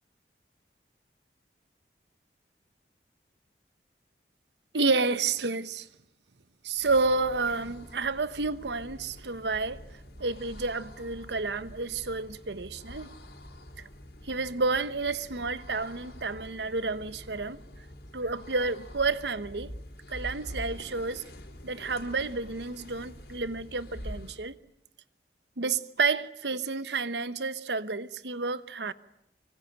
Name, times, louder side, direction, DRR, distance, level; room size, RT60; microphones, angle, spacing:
voice 1, 4.7-5.9 6.6-9.8 10.2-13.1 14.2-17.6 18.1-19.7 20.1-21.2 21.6-24.6 25.6-28.9, right 3 dB, 85° right, 1.1 m, -30 dB
sound 1, 6.7-24.5, equal, 65° left, 4.5 m, -46 dB
24.5 x 24.5 x 8.9 m
head